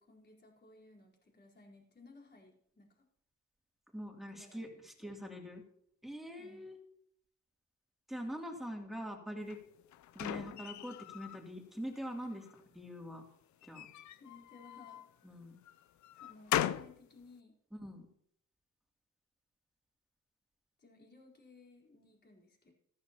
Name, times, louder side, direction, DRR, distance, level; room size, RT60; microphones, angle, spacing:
voice 1, 0.0-3.0 4.3-4.8 5.2-5.3 6.3-6.7 14.1-15.1 16.1-17.5 20.8-22.7, left 3 dB, 35° left, -1 dB, 4.3 m, -59 dB
voice 2, 3.9-5.6 6.0-6.8 8.1-9.6 10.1-13.2 13.6-13.9 15.2-15.6 17.7-18.1, equal, ahead, 1 dB, 2.9 m, -43 dB
sound 1, 9.5-11.4 11.9-12.6 13.6-15.1 15.7-17.0, left 12 dB, 70° left, 0.6 m, -39 dB
14.5 x 13.5 x 3.0 m, 0.69 s
cardioid pair, 90°, 30 cm